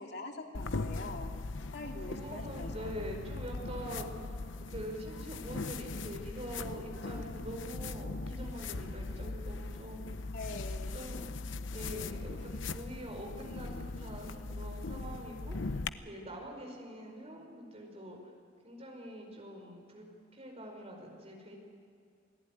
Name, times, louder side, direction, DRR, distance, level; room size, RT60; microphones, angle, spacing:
voice 1, 0.0-1.3 1.7-2.9 10.3-10.9, left 2 dB, 60° left, 2 dB, 2.4 m, -43 dB
sound 1, 0.5-15.9, left 3 dB, 85° left, 0.8 m, -40 dB
voice 2, 1.8-4.4 4.7-10.3 10.9-11.3 11.7-18.3 18.6-20.1 20.3-21.6, equal, 35° right, 2 dB, 5.0 m, -45 dB
28.0 x 18.0 x 9.5 m, 2.2 s
head